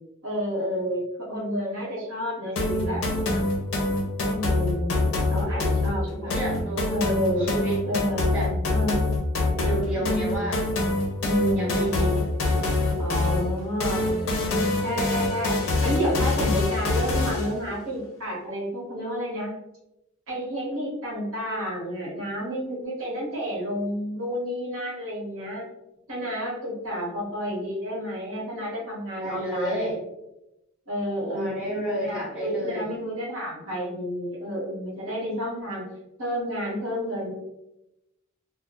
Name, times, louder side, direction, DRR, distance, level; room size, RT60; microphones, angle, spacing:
voice 1, 0.2-3.4 4.2-4.9 5.3-6.3 6.9-7.5 7.8-8.3 8.7-9.0 10.0-10.2 11.2-12.3 12.9-19.5 20.3-25.7 26.1-29.7 30.9-35.8 36.2-37.3, equal, 75° right, -5 dB, 0.9 m, -30 dB
sound 1, 2.6-17.6, left 2 dB, 85° left, 0.5 m, -25 dB
voice 2, 6.0-7.0 7.4-8.0 8.3-8.8 9.6-10.8 11.5-12.1 29.2-30.0 31.3-32.9, right 1 dB, 5° right, -10 dB, 1.2 m, -31 dB
2.2 x 2.0 x 2.7 m, 0.89 s
head